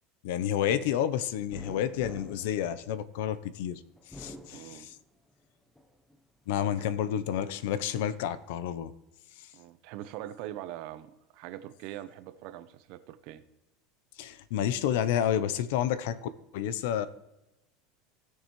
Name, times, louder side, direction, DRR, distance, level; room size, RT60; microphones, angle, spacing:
voice 1, 0.2-3.8 4.1-4.9 6.5-8.9 14.2-17.1, left 10 dB, 70° left, 14 dB, 0.7 m, -30 dB
sound 1, 1.5-3.4 4.0-5.3 5.7-6.6, left 1 dB, 5° left, 0.8 m, -48 dB
voice 2, 4.5-4.9 6.8-6.9 9.5-13.4, right 13 dB, 55° right, 13 dB, 0.7 m, -42 dB
17.0 x 6.7 x 3.1 m, 0.97 s
supercardioid pair, 155°, 0 cm